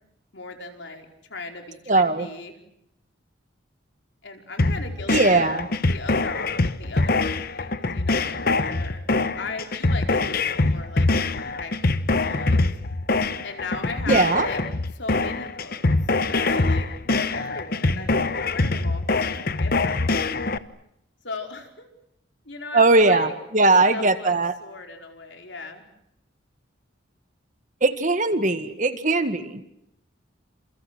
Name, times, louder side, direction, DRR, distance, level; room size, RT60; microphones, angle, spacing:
voice 1, 0.3-2.6 4.2-5.6 5.9-9.0 9.3-10.4 10.7-11.8 12.2-12.7 13.4-14.6 15.0-15.9 16.2-20.4 21.2-21.9 22.4-23.3 23.6-25.8, left 3 dB, 65° left, 3 dB, 4.8 m, -37 dB
voice 2, 1.9-2.3 5.1-5.7 14.1-14.5 22.7-23.3 23.5-24.5 27.8-29.6, right 3 dB, 40° right, 9 dB, 1.8 m, -19 dB
sound 1, 4.6-20.6, left 3 dB, 50° left, 1.1 m, -24 dB
30.0 x 28.5 x 6.3 m, 0.79 s
head